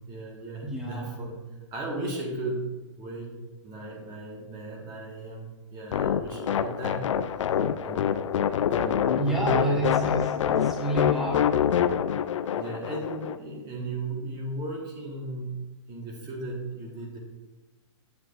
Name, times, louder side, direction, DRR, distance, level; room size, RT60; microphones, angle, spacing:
voice 1, 0.0-2.7 3.0-3.3 3.6-7.1 7.8-8.1 8.7-10.1 12.5-15.6 15.9-17.2, right 2 dB, 25° right, -1 dB, 1.6 m, -35 dB
voice 2, 0.6-1.1 9.2-11.6, right 1 dB, ahead, -3 dB, 1.0 m, -29 dB
sound 1, 5.9-13.4, left 9 dB, 75° left, 0.5 m, -26 dB
8.0 x 7.7 x 2.5 m, 1.2 s
hypercardioid pair, 145°, 16 cm